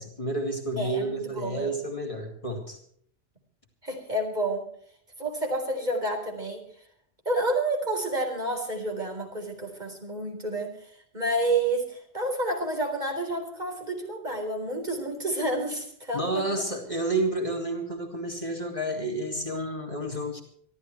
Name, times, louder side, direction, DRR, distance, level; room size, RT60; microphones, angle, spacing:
voice 1, 0.0-2.8 16.1-20.4, right 1 dB, 30° left, 1 dB, 3.2 m, -30 dB
voice 2, 0.8-1.7 3.8-4.7 5.2-6.6 7.3-10.8 11.1-16.5, right 1 dB, 45° right, 2 dB, 4.2 m, -29 dB
25.5 x 13.5 x 3.2 m, 0.62 s
omnidirectional pair, 1.1 m